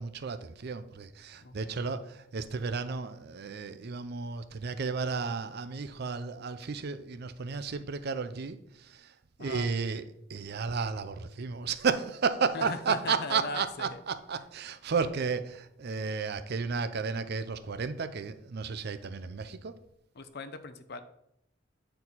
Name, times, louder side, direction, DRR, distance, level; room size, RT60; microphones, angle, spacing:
voice 1, 0.0-9.1 9.4-10.0 10.3-19.7, right 5 dB, 55° right, 0.5 m, -33 dB
voice 2, 1.4-1.8 9.4-9.7 12.5-14.0 20.2-21.0, left 3 dB, 55° left, 0.6 m, -39 dB
8.9 x 4.5 x 4.0 m
head